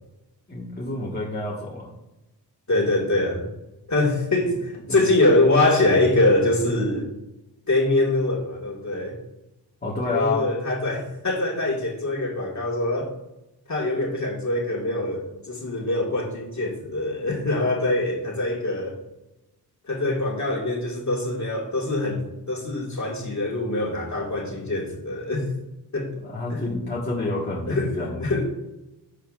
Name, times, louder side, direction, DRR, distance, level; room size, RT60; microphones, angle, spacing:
voice 1, 0.5-1.9 4.4-4.5 4.9-5.0 9.8-10.4 26.2-28.3, left 2 dB, 25° left, -5 dB, 1.7 m, -28 dB
voice 2, 2.7-3.5 3.9-7.1 7.7-9.2 10.1-13.1 13.7-19.0 19.9-25.5 25.9-26.1 26.5-26.6 27.7-28.4, left 2 dB, 45° left, -2 dB, 2.1 m, -24 dB
11.5 x 6.8 x 2.6 m, 0.96 s
wide cardioid pair, 150°, 41 cm